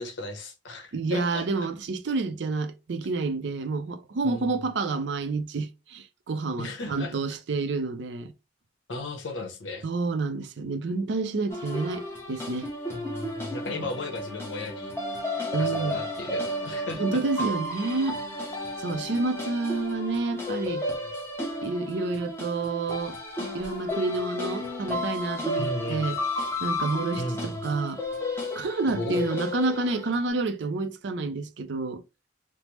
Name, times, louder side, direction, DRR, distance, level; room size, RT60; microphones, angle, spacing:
voice 1, 0.0-1.5 4.2-4.5 6.6-7.2 8.9-9.9 12.9-14.9 15.6-17.2 25.6-26.0 27.2-27.6 28.9-29.2, left 2 dB, 80° left, 0.9 m, -35 dB
voice 2, 0.9-8.3 9.8-12.7 13.8-13.9 15.5-16.0 16.9-18.2 18.8-20.8 21.6-23.2 23.5-26.2 26.6-28.0 28.5-32.0, right 3 dB, 70° right, 0.4 m, -29 dB
sound 1, 11.5-30.2, left 1 dB, 15° left, 0.7 m, -33 dB
3.2 x 2.0 x 2.9 m
head